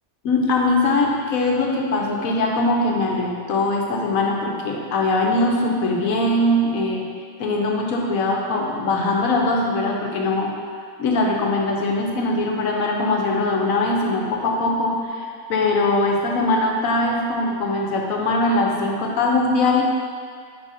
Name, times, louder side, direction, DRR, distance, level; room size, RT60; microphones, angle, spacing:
voice 1, 0.2-7.1 7.4-10.5 11.0-19.8, left 2 dB, 75° left, 0 dB, 1.2 m, -21 dB
5.4 x 4.1 x 4.8 m, 2.1 s
omnidirectional pair, 1.5 m